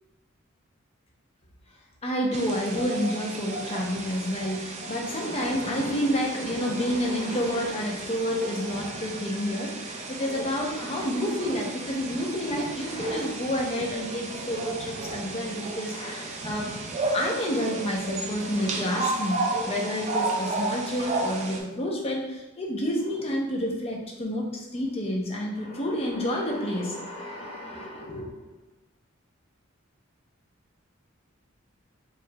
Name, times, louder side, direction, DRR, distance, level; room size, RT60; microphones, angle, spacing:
voice 1, 2.0-16.7 17.1-28.3, equal, 30° left, -1 dB, 0.6 m, -29 dB
sound 1, 2.3-21.6, right 2 dB, 35° right, 0.4 m, -33 dB
4.8 x 3.0 x 2.2 m, 0.97 s
head